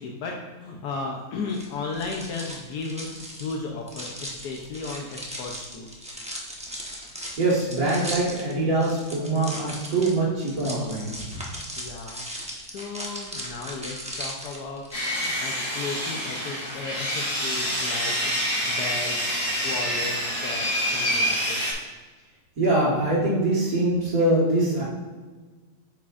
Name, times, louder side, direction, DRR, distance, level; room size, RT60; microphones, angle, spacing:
voice 1, 0.0-5.9 11.8-12.2 12.6-14.9 15.1-19.4 19.6-21.9, left 3 dB, 85° left, 0 dB, 1.4 m, -35 dB
sound 1, 1.5-15.3, equal, 5° right, 0.7 m, -38 dB
voice 2, 7.4-11.5 22.6-24.8, right 2 dB, 60° right, -9 dB, 2.2 m, -23 dB
Sawing, 14.9-21.7, equal, 55° left, 2.5 m, -27 dB
8.4 x 6.0 x 2.5 m, 1.3 s
omnidirectional pair, 1.7 m